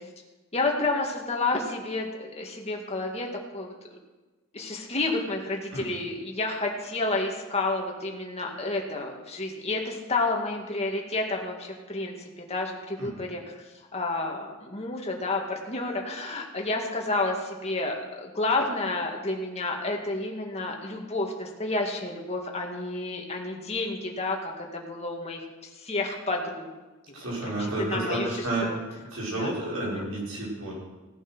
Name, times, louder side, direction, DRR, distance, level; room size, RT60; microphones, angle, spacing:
voice 1, 0.5-3.3 3.5-4.0 4.5-13.6 13.9-25.4 25.7-26.7 27.4-27.5 27.8-28.3 28.7-28.8 29.3-29.5 29.8-30.0, left 2 dB, 30° left, 0 dB, 2.2 m, -30 dB
voice 2, 27.1-28.7 29.1-30.7, right 2 dB, 75° right, -5 dB, 6.1 m, -30 dB
17.0 x 9.1 x 6.3 m, 1.2 s
head